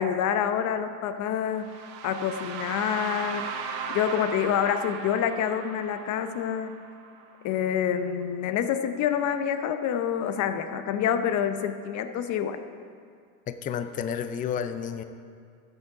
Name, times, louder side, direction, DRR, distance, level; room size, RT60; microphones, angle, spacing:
voice 1, 0.0-1.7 2.0-3.5 3.9-6.7 7.4-12.6, left 8 dB, 45° left, 9 dB, 0.8 m, -27 dB
sound 1, 1.6-7.5, right 6 dB, 65° right, 1.3 m, -37 dB
voice 2, 13.5-15.0, left 8 dB, 20° left, 10 dB, 0.4 m, -31 dB
12.5 x 8.1 x 4.8 m, 2.2 s
supercardioid pair, 135°, 42 cm